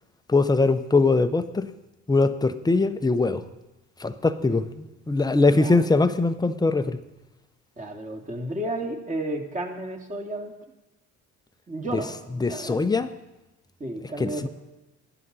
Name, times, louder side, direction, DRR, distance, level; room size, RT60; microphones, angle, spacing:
voice 1, 0.3-1.7 2.1-3.4 4.0-7.0 11.9-12.0 12.4-13.1 14.2-14.5, left 3 dB, 10° left, 10 dB, 0.8 m, -22 dB
voice 2, 5.5-5.9 7.8-10.5 11.7-12.8 13.8-14.5, right 1 dB, 25° right, 2 dB, 2.4 m, -32 dB
15.5 x 11.0 x 4.1 m, 0.99 s
hypercardioid pair, 70°, 34 cm